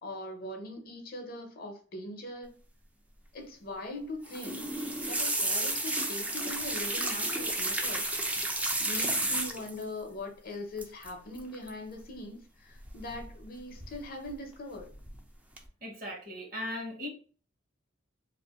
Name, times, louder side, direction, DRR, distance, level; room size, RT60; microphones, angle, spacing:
voice 1, 0.0-2.5 3.3-4.7 5.1-8.0 8.9-14.9, left 1 dB, 50° left, 0.7 m, -41 dB
sound 1, 4.2-9.8 10.8-11.1 11.4-11.7 12.9-13.4 13.8-14.3 14.8-15.2 15.6-15.7, right 1 dB, 5° right, 0.4 m, -32 dB
voice 2, 15.8-17.1, left 1 dB, 45° right, 1.0 m, -38 dB
2.5 x 2.5 x 3.4 m
head